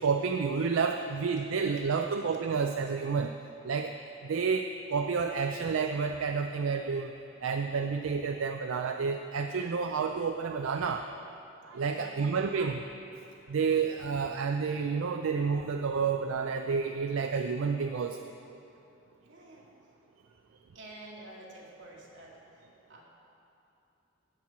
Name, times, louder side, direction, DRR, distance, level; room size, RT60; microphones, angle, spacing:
voice 1, 0.0-3.3 3.6-4.0 4.2-7.1 7.4-11.0 11.7-12.8 13.5-18.3, right 5 dB, 85° right, 5 dB, 0.4 m, -30 dB
voice 2, 11.7-12.2 19.2-19.7 20.7-23.0, right 1 dB, 65° right, -4 dB, 2.1 m, -50 dB
13.0 x 4.4 x 8.5 m, 2.7 s
head